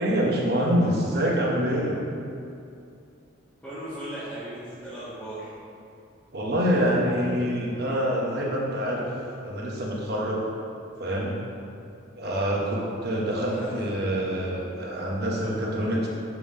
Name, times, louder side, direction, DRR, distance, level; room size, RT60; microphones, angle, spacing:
voice 1, 0.0-2.0 6.3-9.1 9.4-10.4 11.0-11.3 12.2-16.1, equal, 50° right, -3 dB, 0.9 m, -26 dB
voice 2, 3.6-5.5 13.5-13.8, right 1 dB, 5° left, -16 dB, 1.2 m, -37 dB
5.9 x 3.7 x 4.8 m, 2.6 s
head